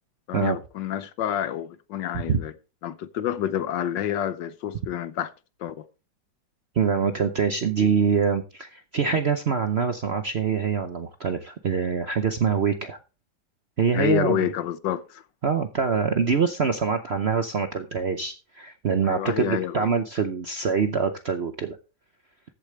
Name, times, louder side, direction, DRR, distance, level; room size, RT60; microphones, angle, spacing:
voice 1, 0.3-2.5 2.8-5.3 5.6-5.9 7.8-7.9 13.9-15.2 19.0-19.9, left 10 dB, 75° left, 1.4 m, -28 dB
voice 2, 6.7-13.0 13.8-14.5 15.4-21.8, right 6 dB, 55° right, 0.7 m, -24 dB
14.0 x 8.4 x 3.2 m
omnidirectional pair, 2.0 m